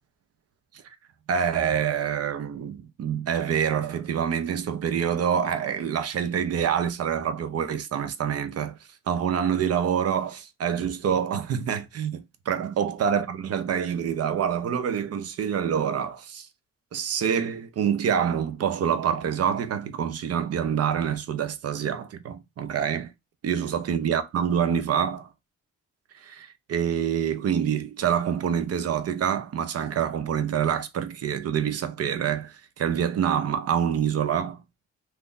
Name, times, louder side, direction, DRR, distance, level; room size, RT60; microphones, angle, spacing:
voice 1, 1.3-8.8 9.1-16.5 16.9-23.1 23.4-25.3 26.2-34.6, right 8 dB, 55° right, 0.7 m, -26 dB
3.7 x 2.6 x 2.5 m
cardioid pair, 90°, 30 cm